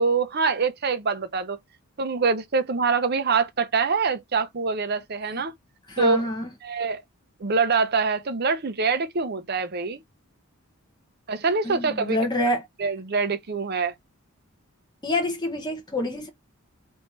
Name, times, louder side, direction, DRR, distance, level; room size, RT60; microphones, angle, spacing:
voice 1, 0.0-1.6 2.0-5.5 6.0-6.3 6.6-7.0 7.4-10.0 11.3-12.2 12.8-13.9, right 4 dB, 45° right, 0.6 m, -24 dB
voice 2, 5.9-6.5 11.6-12.7 15.0-16.3, left 1 dB, 20° left, 1.0 m, -27 dB
3.3 x 2.7 x 4.5 m
head